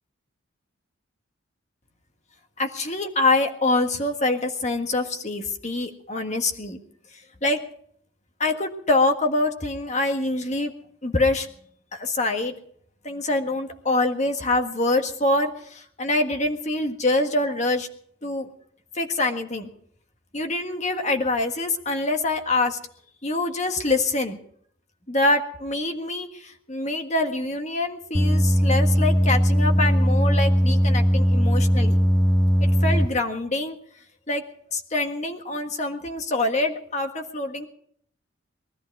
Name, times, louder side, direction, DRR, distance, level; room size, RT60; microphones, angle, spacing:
voice 1, 2.6-6.8 7.4-7.7 8.4-10.7 11.0-11.5 11.9-12.5 13.0-17.9 18.2-18.5 18.9-19.7 20.3-22.8 23.2-24.4 25.1-32.0 32.6-33.8 34.3-34.4 34.7-37.7, left 2 dB, 35° left, 5 dB, 1.7 m, -25 dB
sound 1, 28.1-33.1, equal, 20° left, 1.0 m, -19 dB
20.5 x 13.5 x 4.8 m, 0.63 s
head